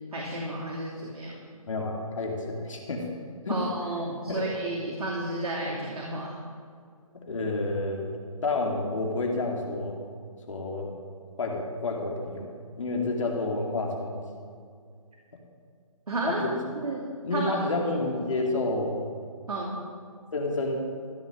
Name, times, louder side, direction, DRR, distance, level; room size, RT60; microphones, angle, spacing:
voice 1, 0.1-1.4 3.5-6.3 16.1-16.4 16.8-17.5 18.3-18.4 19.5-19.8, right 1 dB, 85° right, -3 dB, 2.7 m, -32 dB
voice 2, 1.7-3.1 3.4-3.6 4.3-4.4 7.1-8.1 8.4-10.0 10.5-10.9 11.4-12.5 12.8-14.2 16.3-16.5 17.2-19.0 20.3-20.8, left 2 dB, 60° left, 0 dB, 2.5 m, -29 dB
14.5 x 7.5 x 7.5 m, 2.2 s
hypercardioid pair, 170°, 19 cm